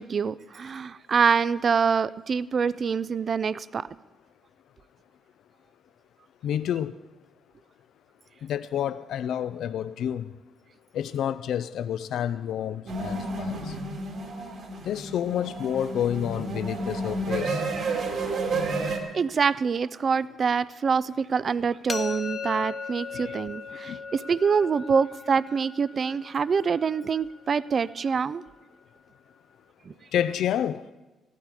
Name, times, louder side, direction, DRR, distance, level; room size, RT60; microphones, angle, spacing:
voice 1, 0.0-3.9 19.1-28.4 29.9-30.0, right 6 dB, 45° right, 0.4 m, -25 dB
voice 2, 6.4-6.9 8.4-10.3 10.9-13.7 14.8-17.6 23.9-24.0 30.1-30.8, left 10 dB, 75° left, 0.4 m, -29 dB
sound 1, 12.9-19.0, right 2 dB, 60° right, 2.3 m, -31 dB
sound 2, 21.9-27.7, left 4 dB, 30° left, 0.9 m, -38 dB
15.5 x 12.0 x 4.8 m
cardioid pair, 90°, 0 cm